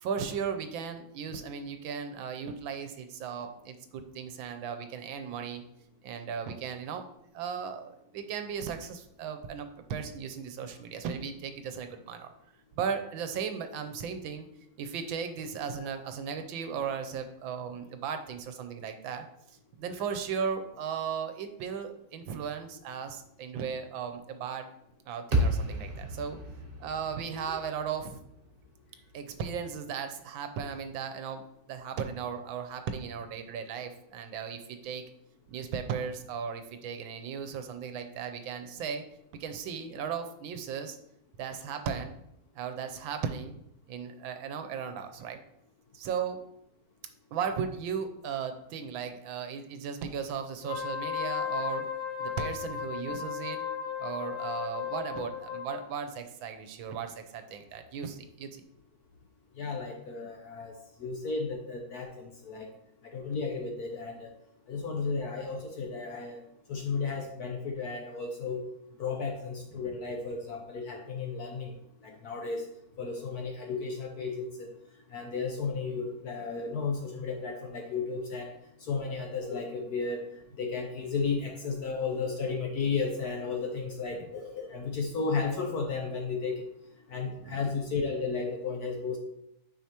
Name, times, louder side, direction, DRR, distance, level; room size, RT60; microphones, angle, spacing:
voice 1, 0.0-5.6 6.0-7.1 7.3-12.3 12.8-14.5 14.8-19.3 19.8-24.7 25.1-26.4 26.8-28.2 29.1-35.0 35.5-39.0 39.4-41.0 41.4-42.1 42.5-43.6 43.9-45.4 45.9-46.4 47.3-51.9 52.2-53.6 54.0-58.6 69.8-69.9 84.1-84.2 87.4-87.6, right 7 dB, 75° right, 7 dB, 1.4 m, -36 dB
sound 1, 25.3-29.6, right 1 dB, 30° right, 1.3 m, -33 dB
Wind instrument woodwind instrument, 50.6-55.8, left 7 dB, 35° left, 1.3 m, -35 dB
voice 2, 59.6-60.7 61.0-62.7 63.1-64.3 64.7-66.4 66.7-68.6 69.0-71.7 72.0-72.6 73.0-74.5 75.1-78.5 78.9-80.2 80.6-86.6 87.1-89.2, left 4 dB, 65° left, 2 dB, 1.0 m, -33 dB
9.2 x 4.9 x 2.9 m, 0.79 s
omnidirectional pair, 2.2 m